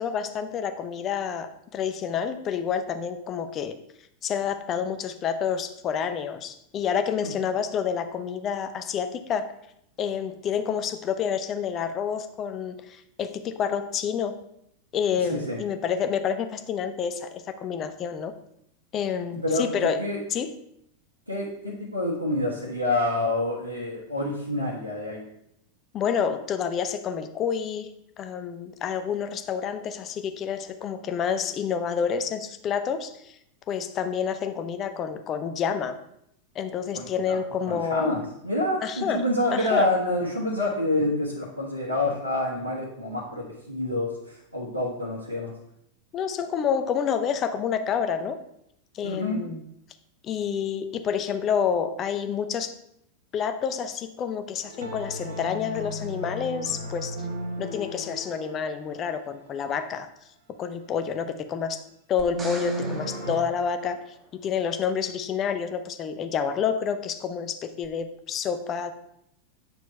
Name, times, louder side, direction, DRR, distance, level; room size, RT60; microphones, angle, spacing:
voice 1, 0.0-3.8 4.2-9.5 10.0-14.3 14.9-18.3 18.9-20.0 20.3-20.5 25.9-33.4 33.7-35.9 36.5-38.2 38.8-39.2 39.5-39.9 46.1-48.4 48.9-49.6 50.2-52.7 53.3-57.2 57.6-60.1 60.6-61.8 62.1-64.0 64.3-68.9, left 7 dB, 30° left, 8 dB, 0.7 m, -28 dB
voice 2, 19.3-20.2 21.3-25.3 36.9-37.4 37.7-45.5 49.0-49.4, left 1 dB, 90° left, -6 dB, 1.3 m, -28 dB
sound 1, 54.6-59.4 62.3-63.4, right 1 dB, 70° right, 1.1 m, -35 dB
sound 2, 62.2-64.5 67.8-67.9, right 1 dB, 20° right, 1.5 m, -42 dB
8.3 x 4.5 x 4.1 m, 0.76 s
figure-of-eight pair, 90°, 0 cm